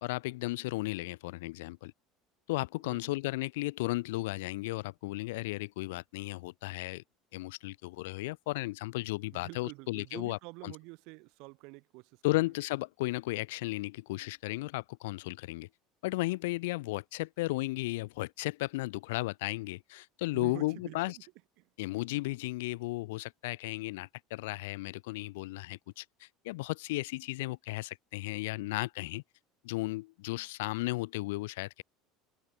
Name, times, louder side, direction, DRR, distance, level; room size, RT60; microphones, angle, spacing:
voice 1, 0.0-1.9 2.5-7.0 7.3-10.4 10.6-10.7 12.2-15.7 16.0-21.2 21.8-29.2 29.6-31.8, left 21 dB, 85° left, 2.0 m, -35 dB
voice 2, 2.8-3.2 9.3-12.5 20.3-21.2 21.6-21.7, right 28 dB, 70° right, 7.0 m, -48 dB
open air
supercardioid pair, 120°, 0 cm